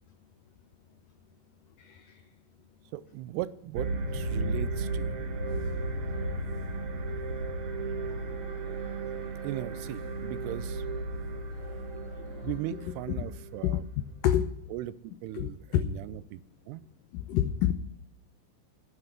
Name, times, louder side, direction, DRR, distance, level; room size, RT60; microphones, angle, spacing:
voice 1, 1.8-2.2 13.6-13.8 14.2-14.5 15.4-15.8 17.1-17.7, left 11 dB, 90° left, 9 dB, 1.9 m, -27 dB
voice 2, 2.9-5.2 9.4-10.8 12.4-13.8 14.7-16.4 16.7-16.8, right 14 dB, 85° right, 16 dB, 2.6 m, -38 dB
sound 1, 3.7-14.0, right 2 dB, 65° right, 1.4 m, -34 dB
sound 2, 5.5-12.6, left 2 dB, 65° left, 5.8 m, -54 dB
11.5 x 9.6 x 6.7 m, 0.72 s
omnidirectional pair, 4.8 m